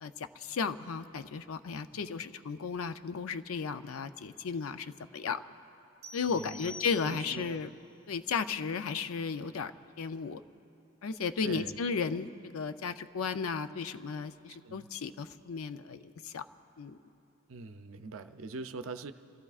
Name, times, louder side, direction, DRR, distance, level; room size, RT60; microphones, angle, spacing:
voice 1, 0.0-5.4 6.1-7.7 8.1-9.7 10.0-10.4 11.0-16.4 16.8-17.0, left 5 dB, 80° left, 10 dB, 0.5 m, -35 dB
voice 2, 1.9-2.2 6.3-6.7 7.0-7.6 11.4-11.8 14.5-14.9 17.5-19.1, right 3 dB, 70° right, 9 dB, 0.6 m, -43 dB
sound 1, 6.0-7.6, left 2 dB, 30° right, 1.1 m, -48 dB
30.0 x 15.0 x 2.4 m, 2.7 s
head